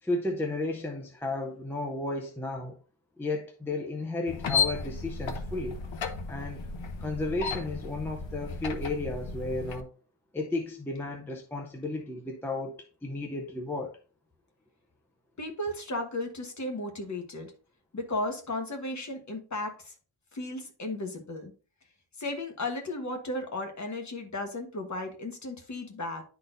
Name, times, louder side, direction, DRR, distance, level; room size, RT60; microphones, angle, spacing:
voice 1, 0.0-2.8 3.2-5.8 6.3-6.6 7.0-9.9 10.3-14.0, left 2 dB, 5° left, 0.6 m, -33 dB
sound 1, 4.3-9.8, left 5 dB, 65° left, 0.9 m, -33 dB
voice 2, 15.4-17.5 17.9-19.9 20.3-21.5 22.2-26.2, left 2 dB, 35° left, 1.3 m, -35 dB
10.5 x 4.1 x 2.6 m
wide cardioid pair, 150°, 49 cm